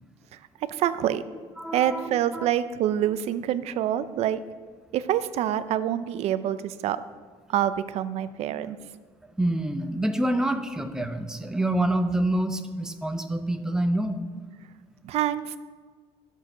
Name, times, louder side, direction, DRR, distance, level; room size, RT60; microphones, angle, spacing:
voice 1, 0.7-1.2 1.7-4.4 4.9-7.0 7.5-8.8 15.0-15.6, right 11 dB, 60° right, 13 dB, 0.5 m, -26 dB
voice 2, 1.6-2.5 9.4-14.2, right 1 dB, 5° right, 6 dB, 0.6 m, -27 dB
11.0 x 6.4 x 6.6 m, 1.5 s
cardioid pair, 160°, 12 cm